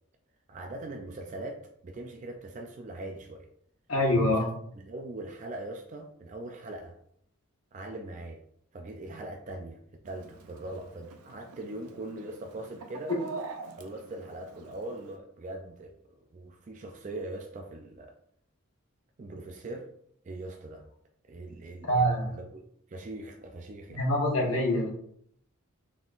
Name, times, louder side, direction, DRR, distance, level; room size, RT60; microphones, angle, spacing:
voice 1, 0.5-3.5 4.1-4.5 4.8-7.0 7.7-8.4 8.7-13.2 13.8-18.1 19.2-19.9 20.2-20.9 21.3-22.6 22.9-24.0, right 2 dB, 35° right, 3 dB, 0.3 m, -41 dB
voice 2, 3.9-4.5 21.8-22.3 23.9-24.9, equal, 65° left, -2 dB, 1.1 m, -25 dB
Chicken rooster, 10.0-15.2, right 3 dB, 85° right, 0.5 m, -45 dB
4.0 x 3.6 x 2.4 m, 0.68 s
head